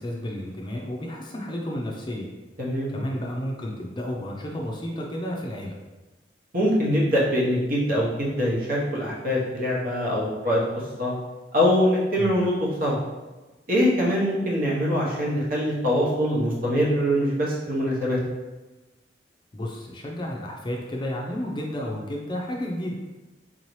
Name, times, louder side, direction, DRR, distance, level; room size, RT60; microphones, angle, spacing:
voice 1, 0.0-2.3 2.9-5.8 12.2-12.3 19.5-22.9, equal, 25° left, -1 dB, 0.5 m, -32 dB
voice 2, 2.6-2.9 6.5-10.6 11.0-11.1 11.5-13.0 13.7-18.2, equal, 55° right, -4 dB, 1.0 m, -23 dB
3.8 x 2.8 x 3.1 m, 1.2 s
head